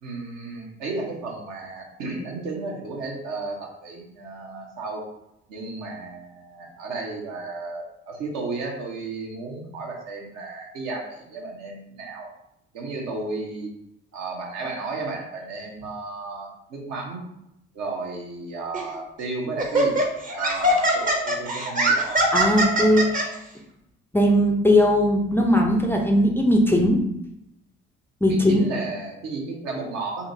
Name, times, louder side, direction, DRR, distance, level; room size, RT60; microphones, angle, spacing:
voice 1, 0.0-5.1 5.5-12.3 12.7-13.7 14.1-17.2 17.7-20.0 20.3-22.2 28.2-30.3, right 3 dB, 55° right, -1 dB, 1.0 m, -33 dB
Laughter, 18.7-19.0 19.6-23.2, right 1 dB, 25° right, 0.8 m, -21 dB
voice 2, 22.3-23.3 24.1-27.0 28.2-28.6, left 1 dB, 5° left, 1 dB, 0.5 m, -19 dB
3.9 x 2.6 x 2.7 m, 0.81 s
figure-of-eight pair, 50°, 32 cm